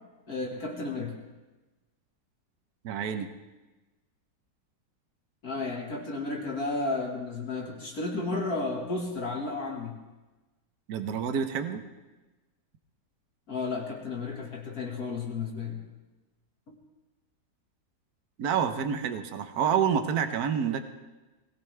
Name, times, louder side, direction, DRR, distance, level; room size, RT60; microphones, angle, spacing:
voice 1, 0.3-1.1 5.4-10.0 13.5-15.8 16.7-16.8, left 3 dB, 55° left, -1 dB, 2.1 m, -33 dB
voice 2, 2.8-3.3 10.9-11.8 18.4-20.8, right 7 dB, 60° right, 8 dB, 1.4 m, -28 dB
20.0 x 17.5 x 3.4 m, 1.1 s
omnidirectional pair, 1.9 m